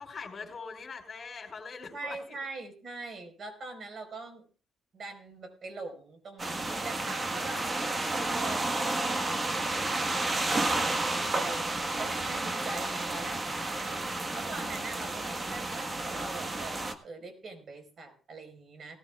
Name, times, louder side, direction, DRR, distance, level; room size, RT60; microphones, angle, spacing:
voice 1, 0.0-2.2, left 4 dB, 40° left, 5 dB, 4.4 m, -42 dB
voice 2, 1.9-4.5 4.9-9.5 10.2-19.0, right 3 dB, 50° right, 6 dB, 4.5 m, -43 dB
sound 1, 6.4-16.9, right 2 dB, 30° right, 1.4 m, -31 dB
18.5 x 14.0 x 2.4 m, 0.40 s
cardioid pair, 90°, 0 cm